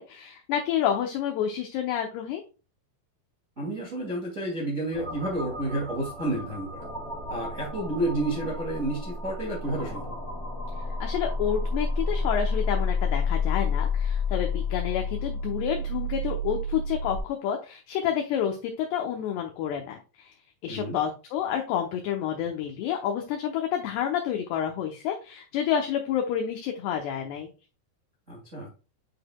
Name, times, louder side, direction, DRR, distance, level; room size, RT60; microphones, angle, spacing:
voice 1, 0.0-2.4 11.0-20.3 20.6-27.5, left 9 dB, 75° left, 3 dB, 2.6 m, -29 dB
voice 2, 3.6-6.9 7.3-10.1 20.7-21.0 28.3-28.7, right 1 dB, 80° right, -4 dB, 0.6 m, -30 dB
sound 1, 4.9-17.2, left 3 dB, 5° left, 0.6 m, -30 dB
9.6 x 4.9 x 2.2 m, 0.33 s
omnidirectional pair, 5.5 m